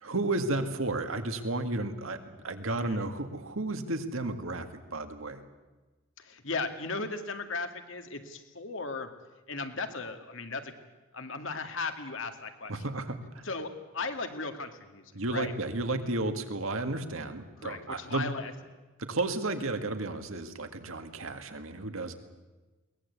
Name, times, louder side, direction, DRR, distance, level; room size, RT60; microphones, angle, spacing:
voice 1, 0.0-5.4 12.7-13.5 15.1-18.3 19.0-22.1, right 2 dB, 75° right, 7 dB, 2.1 m, -33 dB
voice 2, 6.2-9.1 9.5-10.8 11.1-12.7 13.4-15.0 15.3-15.5 17.6-18.5, left 3 dB, 65° left, 7 dB, 2.1 m, -36 dB
22.5 x 19.0 x 8.3 m, 1.2 s
head